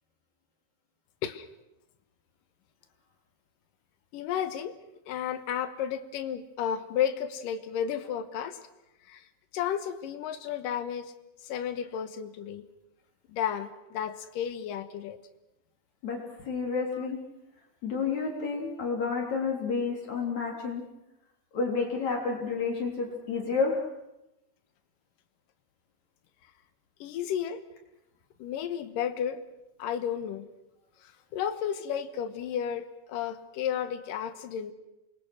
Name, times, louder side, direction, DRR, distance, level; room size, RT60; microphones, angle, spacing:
voice 1, 4.1-4.7 5.1-8.6 9.0-9.2 9.5-11.1 11.4-12.7 13.3-15.2 16.9-17.0 27.0-27.6 28.4-29.4 29.8-30.5 31.0-34.7, left 9 dB, 75° left, 10 dB, 2.8 m, -32 dB
voice 2, 16.4-17.2 17.8-20.8 21.5-23.8, left 4 dB, 55° left, 1 dB, 4.8 m, -30 dB
27.5 x 21.5 x 6.3 m, 0.92 s
omnidirectional pair, 4.1 m